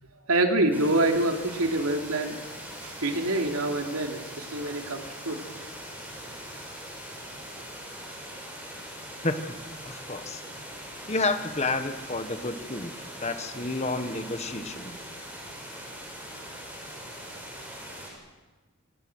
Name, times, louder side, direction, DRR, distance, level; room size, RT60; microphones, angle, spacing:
voice 1, 0.3-2.4 2.8-5.4, right 2 dB, 90° right, 3 dB, 3.4 m, -26 dB
sound 1, 0.7-18.1, equal, 10° right, 6.7 m, -41 dB
voice 2, 9.2-9.6 9.8-10.4 11.1-12.9 13.2-15.0, left 2 dB, 30° left, 8 dB, 1.6 m, -30 dB
28.0 x 26.0 x 6.4 m, 1.2 s
head